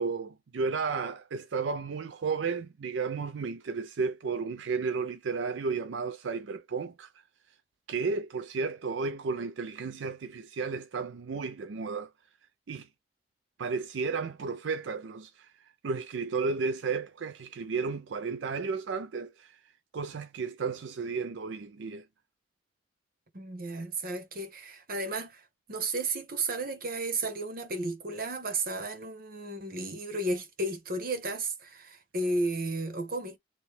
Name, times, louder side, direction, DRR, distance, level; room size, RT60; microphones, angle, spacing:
voice 1, 0.0-7.1 7.9-12.1 12.7-12.9 13.6-15.5 15.8-19.6 19.9-22.0, right 4 dB, 85° right, 0.5 m, -33 dB
voice 2, 23.3-25.4 25.7-33.4, right 2 dB, 55° right, 1.1 m, -33 dB
3.1 x 2.7 x 3.3 m
head